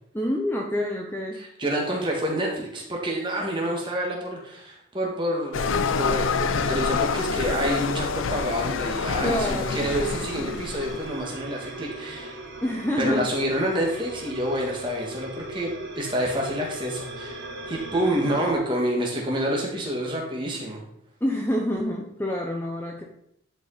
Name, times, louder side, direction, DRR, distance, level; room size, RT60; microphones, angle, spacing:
voice 1, 0.1-1.4 9.2-10.6 12.6-13.3 21.2-23.0, left 1 dB, 10° left, 0 dB, 0.8 m, -27 dB
voice 2, 1.3-12.4 13.0-17.4 17.7-20.8, right 1 dB, 25° right, -1 dB, 2.0 m, -28 dB
sound 1, 5.5-11.1, left 5 dB, 75° left, 0.5 m, -27 dB
sound 2, 9.7-18.5, right 1 dB, 60° right, 1.6 m, -39 dB
11.0 x 5.3 x 4.2 m, 0.75 s
head